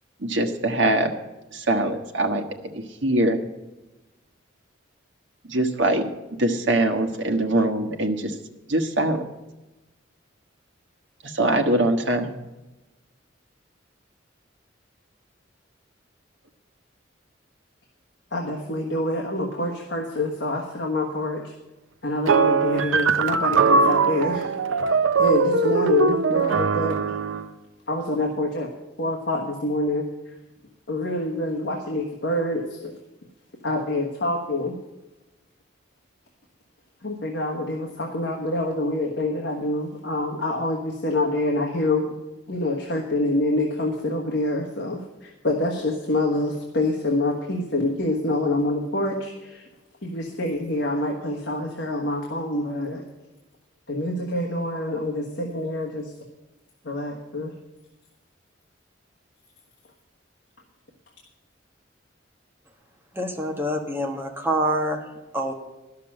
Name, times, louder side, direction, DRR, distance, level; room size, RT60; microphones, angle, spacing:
voice 1, 0.2-1.1 1.5-2.4 2.7-3.4 5.5-8.3 8.7-9.2 11.2-12.3, right 1 dB, 65° right, 3 dB, 1.2 m, -23 dB
voice 2, 18.3-21.5 22.0-24.8 25.2-27.0 27.9-28.7 29.0-30.1 30.9-33.0 33.6-34.8 37.0-42.1 42.5-49.6 50.0-53.0 53.9-56.1 56.8-57.6, left 2 dB, 65° left, 0 dB, 1.4 m, -26 dB
sound 1, 22.3-27.5, right 5 dB, 85° right, 0.6 m, -21 dB
voice 3, 63.1-65.1 65.3-65.5, right 1 dB, 10° right, 2 dB, 1.3 m, -26 dB
11.5 x 6.7 x 8.7 m, 1.0 s
head